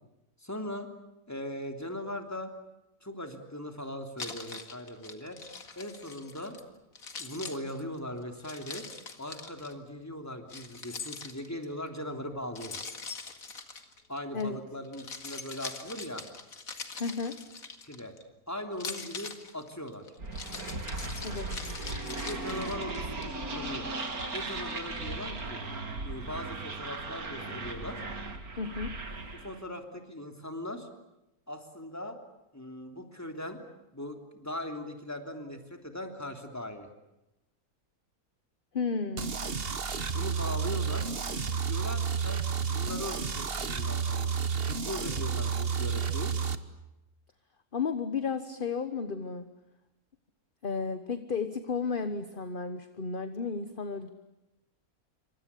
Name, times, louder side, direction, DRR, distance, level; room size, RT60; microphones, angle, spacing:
voice 1, 0.4-0.9 1.3-2.5 3.0-5.4 5.8-6.5 7.2-8.8 9.2-12.8 14.1-16.2 17.8-18.1 18.5-20.0 22.2-23.9 24.3-25.6 26.0-28.0 29.3-30.9 31.5-32.2 32.5-33.6 33.9-36.9 40.1-41.1 41.6-44.4 44.7-46.3, left 1 dB, 10° left, 5 dB, 3.2 m, -39 dB
Keys jangling, 4.2-6.6 7.0-9.7 10.5-11.7 12.6-14.4 14.8-18.2 18.7-23.3, left 4 dB, 65° left, 2.5 m, -42 dB
voice 2, 17.0-17.4 21.2-21.5 28.6-28.9 38.7-39.3 47.7-49.5 50.6-54.1, left 5 dB, 35° left, 10 dB, 1.3 m, -33 dB
sound 1, 20.2-29.6, right 2 dB, 75° right, 3.1 m, -37 dB
sound 2, 39.2-46.6, right 6 dB, 40° right, 1.4 m, -31 dB
28.0 x 25.5 x 8.5 m, 0.94 s
omnidirectional pair, 1.6 m